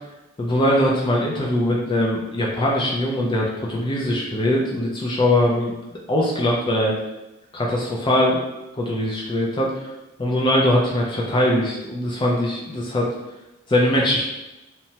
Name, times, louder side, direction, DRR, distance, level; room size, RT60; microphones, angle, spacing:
voice 1, 0.4-5.7 6.1-7.0 7.5-8.4 8.7-9.9 10.2-13.1 13.7-14.3, left 1 dB, 25° left, -3 dB, 0.3 m, -21 dB
3.0 x 2.1 x 2.7 m, 0.98 s
head